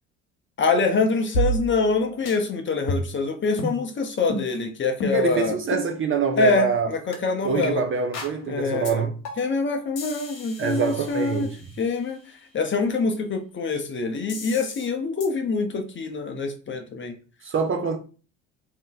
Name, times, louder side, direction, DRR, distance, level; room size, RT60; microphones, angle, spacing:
voice 1, 0.6-5.6 6.4-7.8 8.5-9.1 9.4-11.5 11.8-12.2 12.5-17.1, left 4 dB, 30° left, 0.7 m, -25 dB
sound 1, 1.3-2.0 2.3-2.4 2.9-3.2 3.6-3.8 4.3-4.5 5.0-5.3 5.7-5.9 6.4-6.6 7.1-7.2 7.6-7.7 8.1-8.4 8.8-8.9 9.2-9.6 10.0-11.8 14.3-14.9 15.2-15.3, right 1 dB, 80° left, 1.0 m, -30 dB
voice 2, 5.1-6.9 7.4-9.2 10.6-11.6 17.4-18.0, right 6 dB, 30° right, 0.4 m, -25 dB
2.5 x 2.1 x 3.8 m
hypercardioid pair, 70°, 41 cm